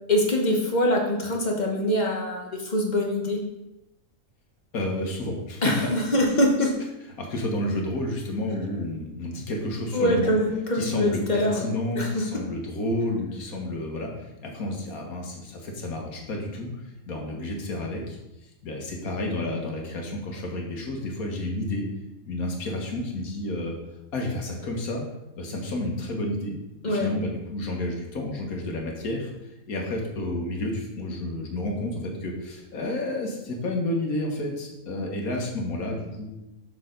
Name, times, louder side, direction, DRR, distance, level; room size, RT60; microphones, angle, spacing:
voice 1, 0.1-3.4 5.6-6.7 9.9-11.7 11.9-12.5 26.8-27.1, left 1 dB, 35° left, 0 dB, 1.2 m, -24 dB
voice 2, 4.7-5.9 7.2-10.3 10.7-16.7 17.1-18.2 18.6-21.9 22.3-23.7 24.1-25.0 25.4-26.6 26.8-36.3, left 1 dB, 85° left, 1 dB, 1.8 m, -30 dB
6.5 x 6.4 x 3.8 m, 0.94 s
omnidirectional pair, 1.5 m